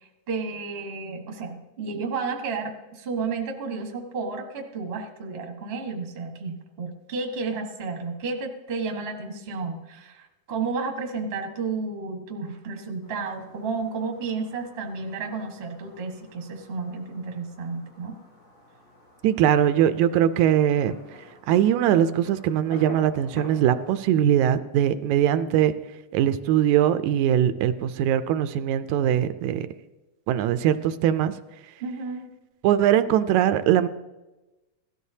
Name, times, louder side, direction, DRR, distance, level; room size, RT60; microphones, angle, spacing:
voice 1, 0.3-18.1 31.8-32.3, right 4 dB, 35° right, 2 dB, 1.0 m, -32 dB
Fireworks, 13.0-24.0, left 1 dB, 85° left, 7.1 m, -49 dB
voice 2, 19.2-20.9 21.5-25.7 26.1-29.6 30.3-31.3 32.6-33.9, right 10 dB, 85° right, 12 dB, 1.9 m, -21 dB
17.0 x 13.0 x 2.8 m, 1.1 s
omnidirectional pair, 3.4 m